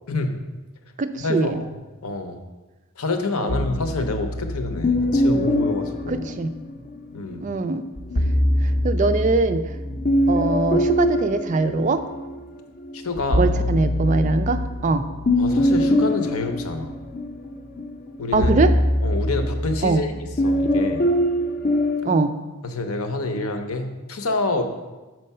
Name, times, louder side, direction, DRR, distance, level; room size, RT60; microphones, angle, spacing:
voice 1, 0.1-0.4 1.2-1.7 2.0-2.4 3.0-6.3 7.1-7.4 12.9-13.5 15.4-16.9 18.2-18.5 19.0-20.1 20.4-21.0 22.6-24.7, left 3 dB, 75° left, 6 dB, 0.7 m, -27 dB
voice 2, 1.0-1.6 3.4-3.6 6.1-6.5 7.4-7.8 8.6-9.8 10.3-12.0 13.4-15.1 18.3-18.7 19.8-20.0 22.1-22.3, right 3 dB, 35° right, 9 dB, 0.3 m, -22 dB
sound 1, 3.5-7.0 8.0-12.4 12.8-22.1, left 1 dB, 40° left, 0.5 m, -23 dB
6.5 x 4.6 x 5.5 m, 1.2 s
head